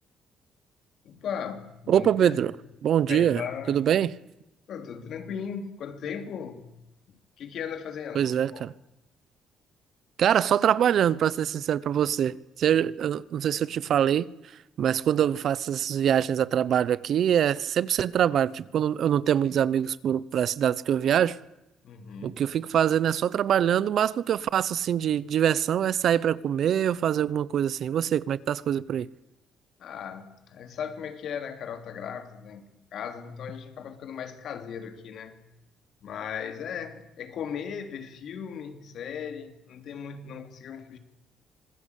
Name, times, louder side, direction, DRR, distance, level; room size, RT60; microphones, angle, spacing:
voice 1, 1.0-2.4 3.1-3.8 4.7-6.7 7.4-8.7 21.8-22.4 29.8-35.4 36.0-41.0, left 7 dB, 60° left, 3.3 m, -37 dB
voice 2, 1.9-2.5 2.8-3.4 3.7-4.1 8.1-8.7 10.2-14.3 14.8-21.4 22.2-29.1, right 9 dB, 60° right, 0.8 m, -24 dB
26.0 x 20.5 x 8.4 m
cardioid pair, 135°, 0 cm